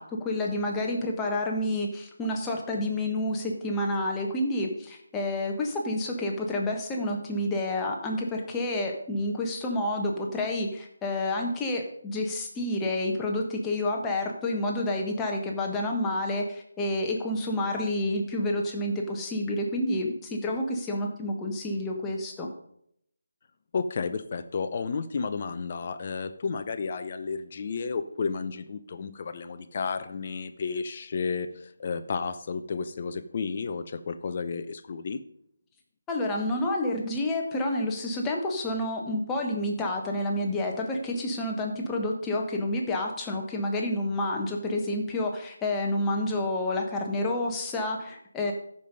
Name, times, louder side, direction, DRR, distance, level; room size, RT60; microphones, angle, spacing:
voice 1, 0.0-22.5 36.1-48.5, left 1 dB, 10° left, 0 dB, 1.3 m, -29 dB
voice 2, 23.7-35.2, left 5 dB, 40° left, 9 dB, 0.7 m, -32 dB
13.5 x 5.5 x 5.3 m, 0.71 s
figure-of-eight pair, 155°, 0 cm